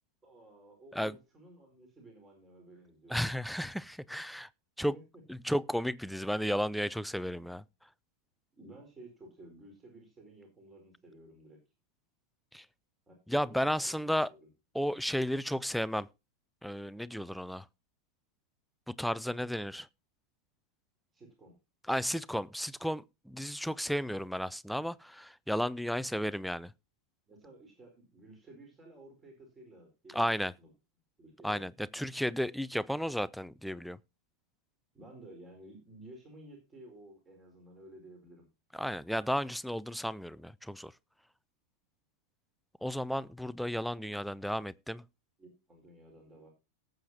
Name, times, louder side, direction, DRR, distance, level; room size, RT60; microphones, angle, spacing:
voice 1, 0.2-3.2 4.9-5.2 8.5-11.6 13.1-14.5 21.1-21.6 27.3-30.7 31.2-31.7 34.9-38.5 45.4-46.5, right 1 dB, 15° right, 4.5 m, -54 dB
voice 2, 3.1-4.5 4.8-4.9 5.3-7.6 12.5-12.7 13.3-14.3 14.7-16.1 16.6-17.7 18.9-19.9 21.9-26.7 30.1-30.5 31.4-34.0 38.7-40.9 42.8-45.0, equal, ahead, 0.5 m, -33 dB
18.5 x 7.8 x 2.8 m
figure-of-eight pair, 90°, 0 cm